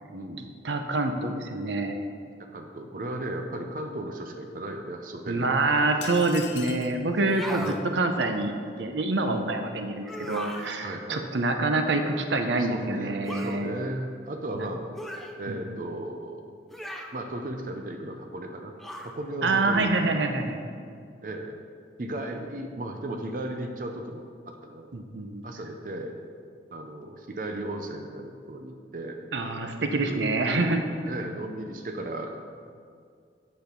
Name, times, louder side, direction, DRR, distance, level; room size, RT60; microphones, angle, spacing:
voice 1, 0.1-0.5 2.5-6.0 7.6-7.9 9.3-9.8 10.8-11.3 12.6-14.8 15.4-16.4 17.1-18.7 19.0-19.9 21.2-21.6 22.0-24.9 25.4-26.1 26.7-29.2 30.0-30.7 31.1-32.5, right 1 dB, 50° right, 4 dB, 0.6 m, -36 dB
voice 2, 0.6-2.0 5.3-8.5 8.8-13.7 15.5-15.8 19.4-20.6 24.9-25.4 29.3-30.8, right 2 dB, 90° right, 6 dB, 0.7 m, -26 dB
sound 1, 6.0-7.0, left 7 dB, 85° left, 0.7 m, -40 dB
sound 2, 7.2-7.8 10.0-10.7 13.3-13.6 15.0-15.3 16.7-17.2 18.8-19.2, equal, ahead, 0.5 m, -37 dB
8.1 x 6.5 x 5.2 m, 2.2 s
head